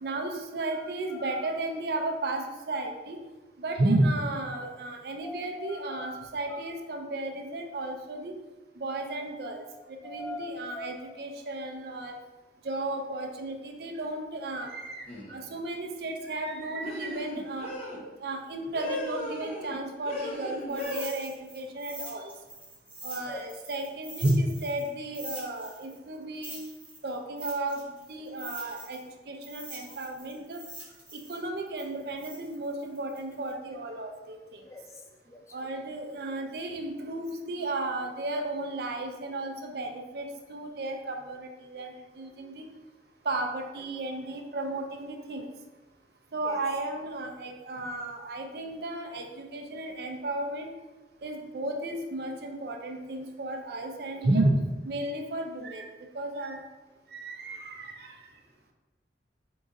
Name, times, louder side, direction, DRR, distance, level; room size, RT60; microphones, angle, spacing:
voice 1, 0.0-3.2 3.6-8.3 8.8-9.6 10.0-12.1 12.6-17.7 18.2-22.3 23.0-26.6 27.0-27.8 28.1-29.0 29.3-30.6 31.1-34.7 35.5-42.6 43.2-45.5 46.3-50.7 51.2-54.6 54.8-56.6 57.1-58.2, right 2 dB, 60° right, 4 dB, 0.5 m, -33 dB
voice 2, 5.2-6.2 6.5-6.6 9.7-11.1 23.3-23.5 34.7-34.8 35.3-35.4 46.4-46.6, left 3 dB, 15° left, 1 dB, 0.3 m, -42 dB
sound 1, 15.1-15.4 16.8-18.0 18.7-19.8 20.1-21.0, left 1 dB, 35° left, 0.8 m, -36 dB
sound 2, 20.7-24.9 25.1-29.1 29.4-33.5, right 2 dB, 10° right, 0.9 m, -45 dB
3.7 x 2.5 x 3.9 m, 1.1 s
head